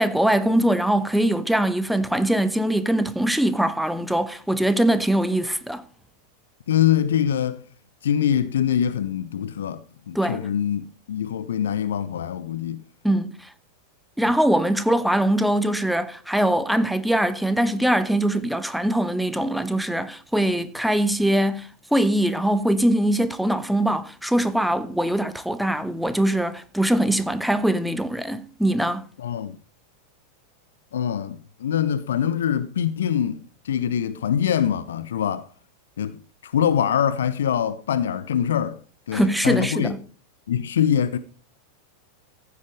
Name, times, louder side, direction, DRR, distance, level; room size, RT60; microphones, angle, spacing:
voice 1, 0.0-5.8 10.1-10.5 13.0-13.5 14.2-29.1 39.1-40.0, right 1 dB, ahead, 1.0 m, -22 dB
voice 2, 6.7-7.6 8.0-12.8 29.2-29.6 30.9-35.5 36.0-38.8 39.1-39.9 40.5-41.2, left 9 dB, 60° left, 0.6 m, -24 dB
15.0 x 8.3 x 5.1 m
figure-of-eight pair, 90°, 0 cm